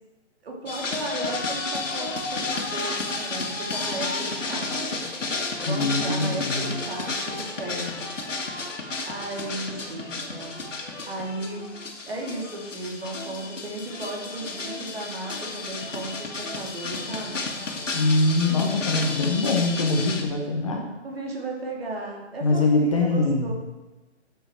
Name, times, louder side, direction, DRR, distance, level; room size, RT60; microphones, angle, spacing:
voice 1, 0.4-5.1 5.6-8.1 9.1-10.6 11.1-11.7 12.0-17.4 21.0-23.5, right 2 dB, 55° right, -1 dB, 2.7 m, -35 dB
sound 1, 0.7-20.2, left 3 dB, 85° left, 2.1 m, -32 dB
voice 2, 5.7-6.8 17.9-20.9 22.4-23.5, left 2 dB, 25° left, 1 dB, 1.0 m, -23 dB
11.0 x 7.0 x 4.4 m, 1.2 s
hypercardioid pair, 165°, 36 cm